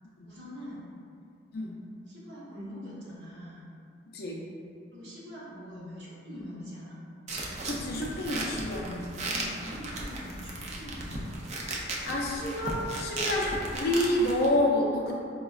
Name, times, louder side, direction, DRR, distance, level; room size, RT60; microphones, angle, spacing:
voice 1, 0.3-0.9 2.1-3.7 4.9-7.0 9.3-11.3, equal, 65° right, -8 dB, 0.9 m, -43 dB
voice 2, 4.1-4.4 7.7-9.2 12.0-15.2, left 1 dB, 55° left, -2 dB, 0.4 m, -29 dB
sound 1, 7.3-14.5, right 2 dB, 35° right, 0.4 m, -36 dB
4.8 x 2.2 x 2.3 m, 2.4 s
head